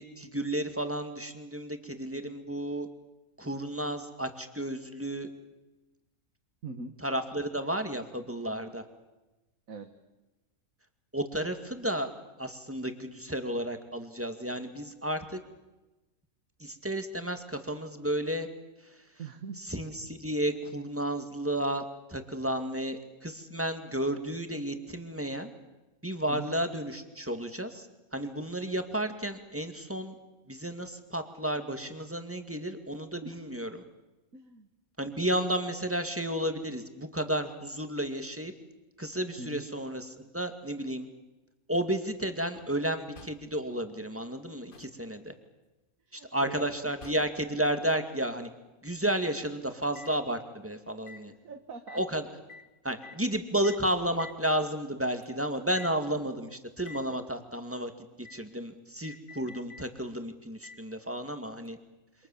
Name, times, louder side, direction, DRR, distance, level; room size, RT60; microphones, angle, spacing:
voice 1, 0.0-2.9 3.4-5.3 7.0-8.8 11.1-12.1 12.4-15.4 16.6-18.5 18.8-19.0 19.6-25.5 26.0-27.9 28.1-30.1 30.5-33.8 35.0-38.5 39.0-41.1 41.7-45.3 46.1-48.5 48.8-51.3 51.9-52.3 52.8-57.9 58.2-61.8, right 1 dB, 10° right, 7 dB, 2.3 m, -32 dB
voice 2, 6.6-7.0 9.7-9.9 19.2-19.6 26.3-26.5 33.2-33.4 34.3-34.7 39.4-39.7 46.1-46.7 51.4-52.0, right 4 dB, 70° right, 7 dB, 2.0 m, -42 dB
sound 1, 42.5-42.9 43.2-43.6 44.5-45.0 46.6-47.5 50.0-50.2 51.1-51.3 51.9-52.1 52.5-52.7 53.0-53.2 53.6-53.9 54.2-54.4 55.2-55.3 55.8-56.0 56.8-57.1 58.2-58.5 59.0-59.9 60.6-60.8 61.7-61.8, left 4 dB, 40° left, 1.3 m, -49 dB
28.5 x 26.0 x 7.4 m, 1.1 s
omnidirectional pair, 1.5 m